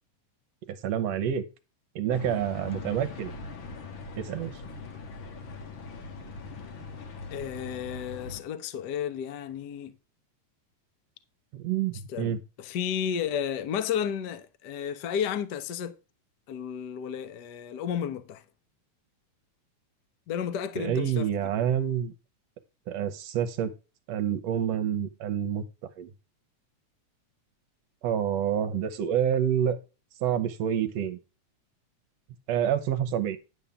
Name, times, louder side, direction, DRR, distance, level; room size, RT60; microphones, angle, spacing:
voice 1, 0.7-1.4 2.0-3.3 4.2-4.5 11.5-12.4 20.8-22.1 22.9-23.7 24.1-25.6 26.0-26.1 28.0-29.8 30.2-31.2 32.5-33.4, right 9 dB, 70° right, 1.9 m, -28 dB
sound 1, 2.1-8.4, left 4 dB, 55° left, 1.6 m, -41 dB
voice 2, 7.3-9.9 12.1-15.9 16.5-18.4 20.3-21.6, left 8 dB, 85° left, 0.9 m, -32 dB
11.0 x 3.7 x 6.9 m
omnidirectional pair, 3.3 m